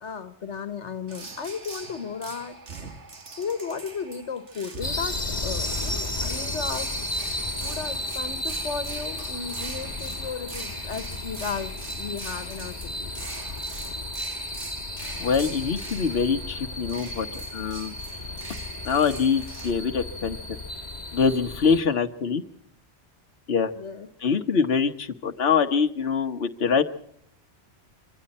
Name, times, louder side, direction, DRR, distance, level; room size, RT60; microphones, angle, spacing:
voice 1, 0.0-2.6 3.4-6.9 7.6-13.1 23.8-24.1, left 5 dB, 80° left, 12 dB, 1.6 m, -34 dB
sound 1, 1.1-19.7, right 3 dB, 80° right, 2.3 m, -42 dB
sound 2, 4.8-21.8, left 1 dB, 35° left, 1.9 m, -33 dB
voice 2, 15.2-17.9 18.8-20.4 21.1-22.4 23.5-23.7 24.2-26.8, left 6 dB, 60° left, 5 dB, 1.4 m, -24 dB
26.0 x 24.5 x 4.2 m, 0.64 s
omnidirectional pair, 1.2 m